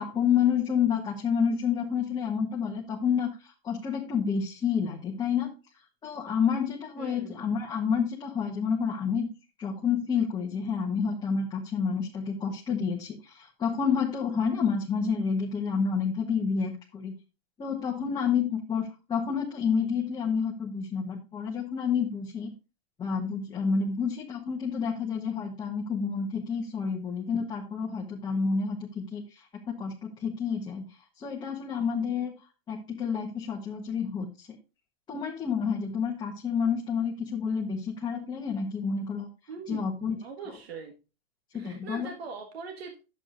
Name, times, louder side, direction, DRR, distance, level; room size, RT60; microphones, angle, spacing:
voice 1, 0.0-5.5 6.0-9.3 9.6-17.1 17.6-22.5 23.0-32.3 32.7-34.5 35.1-39.3 39.7-40.2 40.5-40.6 41.5-42.1, left 6 dB, 15° left, -2 dB, 1.1 m, -29 dB
voice 2, 7.0-7.4 39.5-40.9 41.5-42.9, right 5 dB, 85° right, 3 dB, 1.7 m, -41 dB
11.0 x 8.1 x 2.5 m, 0.30 s
supercardioid pair, 155°, 30 cm